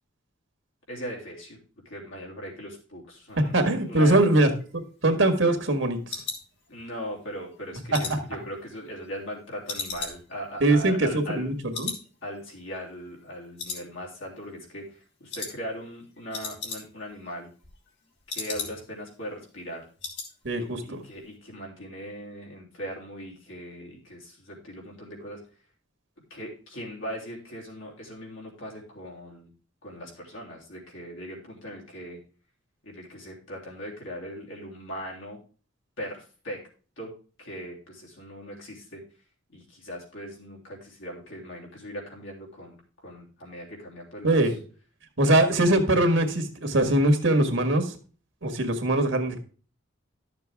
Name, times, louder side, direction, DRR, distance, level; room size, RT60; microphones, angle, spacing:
voice 1, 0.9-1.6 1.8-4.2 6.7-11.5 12.2-17.5 18.3-19.8 20.6-25.4 26.3-29.5 29.8-32.2 32.8-35.4 36.0-36.6 37.0-39.0 39.5-44.5 45.2-45.4, equal, 75° left, -2 dB, 3.4 m, -39 dB
voice 2, 3.5-6.2 7.9-8.0 10.6-11.9 20.4-21.0 44.2-44.5 45.2-47.9 48.4-49.4, right 1 dB, 70° right, 6 dB, 1.7 m, -22 dB
sound 1, 4.4-7.1 7.5-9.3 9.7-11.5 11.7-12.1 12.3-12.4 12.9-13.3 13.6-14.4 14.6-14.9 15.3-15.6 15.9-16.0 16.2-17.1 17.4-19.0 19.3-19.4 19.7-20.3 20.6-20.9 21.2-21.3, left 5 dB, 60° left, 2.5 m, -37 dB
12.5 x 6.8 x 3.5 m, 0.38 s
head